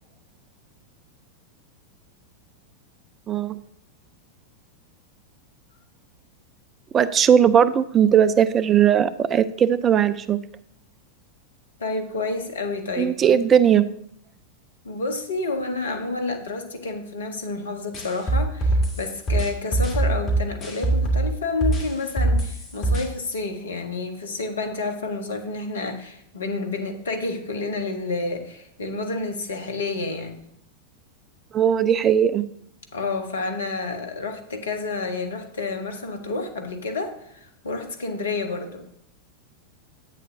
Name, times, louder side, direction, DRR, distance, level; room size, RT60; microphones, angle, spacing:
voice 1, 3.3-3.6 6.9-10.4 13.0-13.8 31.5-32.5, right 8 dB, 25° right, 15 dB, 0.4 m, -18 dB
voice 2, 11.8-13.7 14.8-30.4 32.9-38.8, left 3 dB, 65° left, 5 dB, 1.1 m, -29 dB
sound 1, 17.9-21.3 21.6-23.0, right 2 dB, 30° left, 2.4 m, -22 dB
10.5 x 8.2 x 2.7 m, 0.73 s
figure-of-eight pair, 90°, 0 cm